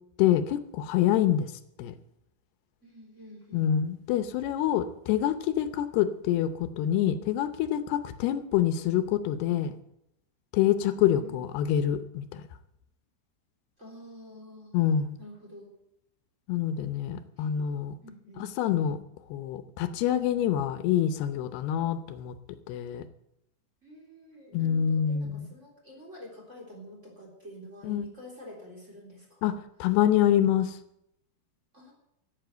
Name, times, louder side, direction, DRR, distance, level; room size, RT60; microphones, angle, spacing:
voice 1, 0.2-1.5 1.8-1.9 3.5-9.7 10.5-12.4 14.7-15.2 16.5-17.9 18.4-19.0 19.3-22.3 22.7-23.0 24.5-25.5 27.8-28.0 29.4-29.5 29.8-30.8, left 10 dB, 85° left, 11 dB, 2.8 m, -26 dB
voice 2, 2.8-3.7 11.0-11.5 13.8-14.8 15.2-15.7 17.4-17.5 18.0-18.5 23.8-29.6 31.7-31.9, equal, 20° right, -1 dB, 3.4 m, -48 dB
14.5 x 8.4 x 8.0 m, 0.80 s
omnidirectional pair, 4.6 m